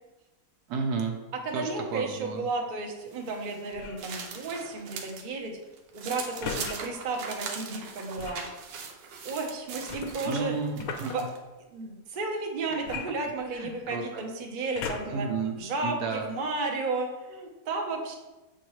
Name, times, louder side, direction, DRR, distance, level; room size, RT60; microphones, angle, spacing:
voice 1, 0.7-1.1 1.5-2.4 10.2-11.3 13.5-14.2 15.0-16.3, right 4 dB, 70° right, 4 dB, 1.1 m, -32 dB
voice 2, 1.4-5.5 5.9-8.5 9.2-10.5 11.1-11.2 11.7-15.3 15.6-18.1, right 3 dB, 45° right, 1 dB, 0.7 m, -33 dB
sound 1, 3.1-5.3 5.6-11.4, right 5 dB, 85° right, 1.4 m, -40 dB
sound 2, 3.7-4.1 6.4-6.8 8.2-8.5 9.9-11.2 12.8-13.8 14.7-15.3 16.0-16.1, left 6 dB, 65° left, 0.9 m, -38 dB
7.2 x 4.4 x 3.1 m, 1.1 s
omnidirectional pair, 1.9 m